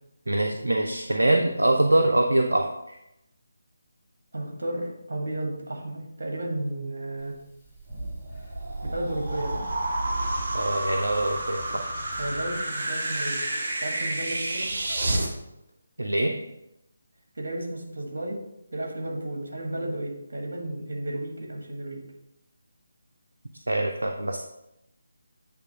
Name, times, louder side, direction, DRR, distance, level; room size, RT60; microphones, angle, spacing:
voice 1, 0.3-3.0 10.5-11.8 16.0-16.4 23.7-24.4, right 1 dB, 75° right, 3 dB, 0.6 m, -24 dB
voice 2, 4.3-7.4 8.8-9.7 12.2-13.5 13.8-14.7 17.4-18.4 18.7-22.0, right 1 dB, 55° right, 1 dB, 1.9 m, -33 dB
sound 1, 7.2-12.6, right 1 dB, 5° left, 1.5 m, -47 dB
sound 2, 7.9-15.3, right 1 dB, 40° right, 1.3 m, -30 dB
8.2 x 3.5 x 4.7 m, 0.87 s
figure-of-eight pair, 150°, 0 cm